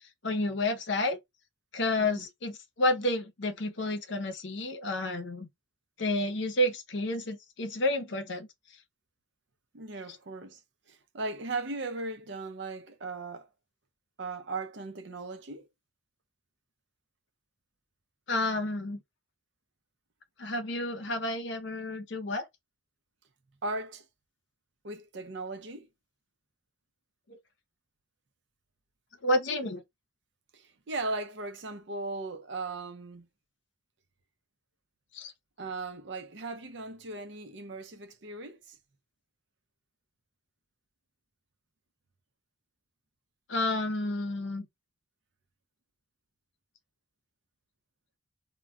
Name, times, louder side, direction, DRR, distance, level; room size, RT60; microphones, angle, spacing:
voice 1, 0.2-1.2 1.7-5.5 6.0-8.5 18.3-19.0 20.4-22.5 29.2-29.8 35.1-35.3 43.5-44.7, left 1 dB, 65° left, 0.7 m, -30 dB
voice 2, 9.7-10.6 10.9-13.5 14.2-15.7 23.6-24.1 24.8-25.9 30.5-33.3 35.6-38.8, right 3 dB, 60° right, 0.6 m, -38 dB
2.2 x 2.2 x 3.6 m
head